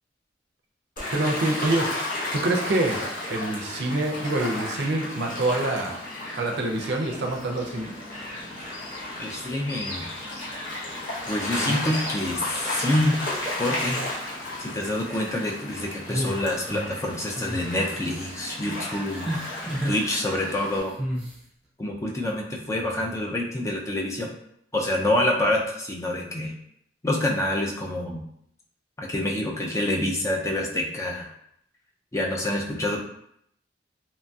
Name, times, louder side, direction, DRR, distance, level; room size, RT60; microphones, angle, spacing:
Gull seagull / Waves surf, 1.0-20.8, left 1 dB, 50° left, 0.8 m, -34 dB
voice 1, 1.1-1.9 2.3-3.0 3.3-6.0 6.3-7.9 11.5-11.8, right 2 dB, 65° right, 1 dB, 0.5 m, -26 dB
sound 1, 6.9-15.3, left 2 dB, 90° left, 0.6 m, -44 dB
voice 2, 9.2-10.4 11.3-13.2 13.6-14.0 14.6-19.3 19.9-21.0 21.8-24.3 24.7-26.5 27.0-28.2 29.0-31.3 32.1-33.0, left 1 dB, 15° left, -1 dB, 0.3 m, -27 dB
sound 2, 16.0-17.0 17.3-17.6 18.0-18.4 19.1-20.0 21.0-21.3, equal, ahead, 1.0 m, -31 dB
2.9 x 2.6 x 2.3 m, 0.72 s
head